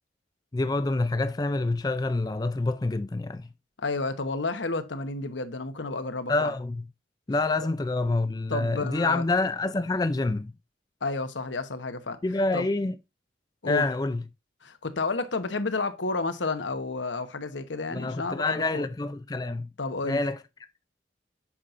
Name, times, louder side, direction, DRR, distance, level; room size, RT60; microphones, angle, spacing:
voice 1, 0.5-3.5 6.3-6.8 7.3-10.5 12.2-12.9 13.7-14.2 17.9-19.7 20.0-20.4, left 2 dB, 20° left, 0.4 m, -27 dB
voice 2, 3.8-6.5 8.5-9.2 11.0-12.2 12.5-12.6 13.6-13.9 14.6-18.9 19.8-20.2, left 3 dB, 80° left, 1.1 m, -31 dB
8.5 x 5.8 x 2.5 m
head